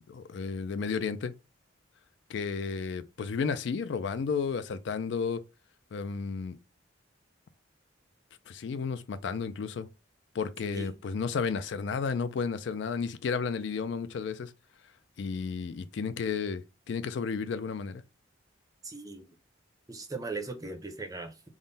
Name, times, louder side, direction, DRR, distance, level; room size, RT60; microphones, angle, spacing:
voice 1, 0.1-1.3 2.3-5.4 5.9-6.6 8.5-9.9 10.3-14.5 15.2-18.0, left 5 dB, 60° left, 0.3 m, -32 dB
voice 2, 10.7-11.0 18.8-19.3 19.9-21.4, right 3 dB, 15° right, 0.5 m, -39 dB
3.6 x 2.1 x 3.9 m
head